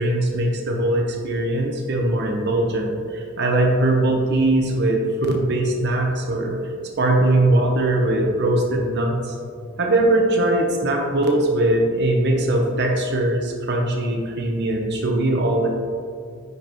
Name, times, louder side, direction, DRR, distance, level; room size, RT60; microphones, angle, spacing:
voice 1, 0.0-6.6 7.0-9.3 9.8-15.7, right 1 dB, 55° right, 1 dB, 0.9 m, -20 dB
9.3 x 5.6 x 3.1 m, 2.2 s
head